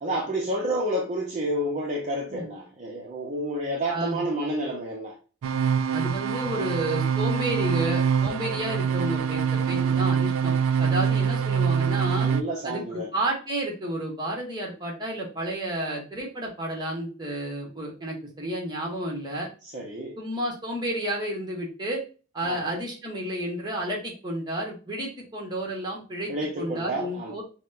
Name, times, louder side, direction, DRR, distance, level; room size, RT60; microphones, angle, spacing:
voice 1, 0.0-5.1 12.1-13.1 19.6-20.2 22.4-22.6 26.3-27.4, right 1 dB, 35° right, -2 dB, 0.7 m, -30 dB
voice 2, 3.9-4.2 5.9-12.3 12.6-19.5 20.2-22.0 22.3-26.3 26.6-27.4, right 1 dB, 20° right, -1 dB, 1.1 m, -31 dB
sound 1, 5.4-12.4, right 7 dB, 85° right, 0.4 m, -24 dB
6.0 x 2.2 x 2.6 m, 0.36 s
head